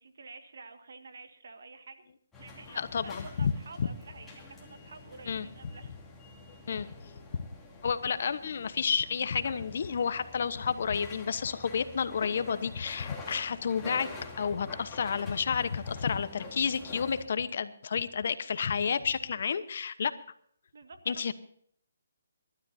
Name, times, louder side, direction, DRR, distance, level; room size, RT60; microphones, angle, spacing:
voice 1, 0.0-2.0 2.4-5.9 20.7-21.3, right 4 dB, 65° right, 7 dB, 1.9 m, -49 dB
sound 1, 2.3-17.3, left 3 dB, 10° left, 2.8 m, -48 dB
voice 2, 2.8-3.5 3.8-3.9 5.3-5.5 6.7-6.9 7.3-7.5 7.8-14.1 14.4-20.1 21.1-21.3, left 6 dB, 55° left, 13 dB, 1.0 m, -30 dB
24.5 x 12.5 x 2.8 m, 0.64 s
hypercardioid pair, 155°, 0 cm